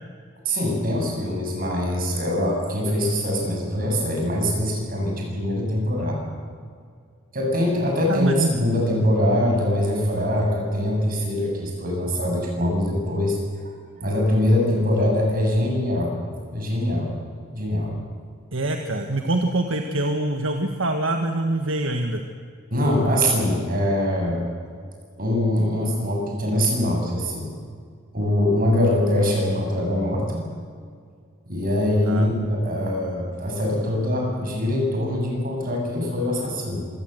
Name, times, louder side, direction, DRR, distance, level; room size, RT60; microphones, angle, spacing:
voice 1, 0.4-6.2 7.3-13.7 14.0-16.2 16.5-17.1 17.5-18.0 22.7-24.4 25.2-27.5 28.1-30.5 31.5-36.8, left 1 dB, 45° right, 0 dB, 7.4 m, -23 dB
voice 2, 8.1-8.5 18.5-22.2 32.1-32.3, right 2 dB, 70° right, 4 dB, 1.6 m, -24 dB
26.0 x 18.0 x 8.0 m, 2.1 s
head